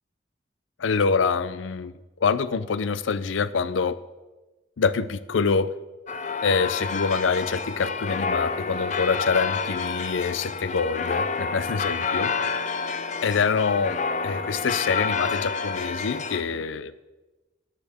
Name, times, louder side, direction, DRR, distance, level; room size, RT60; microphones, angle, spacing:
voice 1, 0.8-1.9 2.2-4.0 4.8-5.7 6.4-12.3 13.2-16.9, left 5 dB, 90° left, 14 dB, 0.5 m, -25 dB
sound 1, 6.1-16.4, left 5 dB, 40° left, 0.5 m, -29 dB
13.0 x 10.0 x 3.5 m, 1.2 s
head